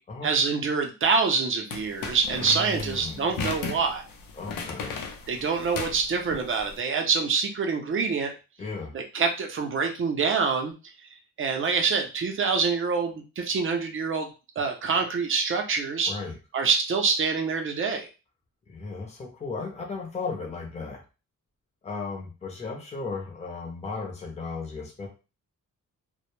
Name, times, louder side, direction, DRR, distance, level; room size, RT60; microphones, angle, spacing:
voice 1, 0.2-4.0 5.3-8.3 8.9-10.7 11.4-14.3 14.6-16.1 16.5-18.1, right 5 dB, 40° right, 4 dB, 0.5 m, -26 dB
sound 1, 1.7-6.7, left 4 dB, 85° left, 0.5 m, -36 dB
voice 2, 2.4-3.4 4.3-5.0 8.6-8.9 16.1-16.3 18.7-21.0 21.8-25.1, left 4 dB, 20° left, 0 dB, 0.6 m, -35 dB
2.1 x 2.0 x 2.9 m, 0.31 s
wide cardioid pair, 160°, 33 cm